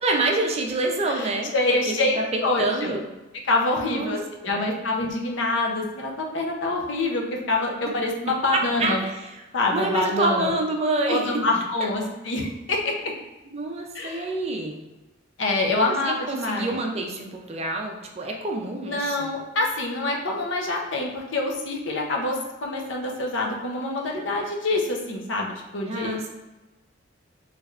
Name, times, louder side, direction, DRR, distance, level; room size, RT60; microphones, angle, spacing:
voice 1, 0.0-1.5 1.9-2.0 2.3-3.0 3.8-4.2 4.4-4.7 7.8-8.0 8.5-9.3 9.7-11.4 11.8-11.9 13.5-14.8 15.8-19.3 25.9-26.3, right 2 dB, 35° right, 1 dB, 0.4 m, -27 dB
voice 2, 1.1-2.2 2.4-2.9 3.4-9.0 9.5-10.5 11.1-12.9 13.9-14.3 15.4-16.8 18.9-26.2, left 2 dB, 75° left, 0 dB, 0.6 m, -26 dB
3.3 x 3.1 x 2.4 m, 1.1 s
head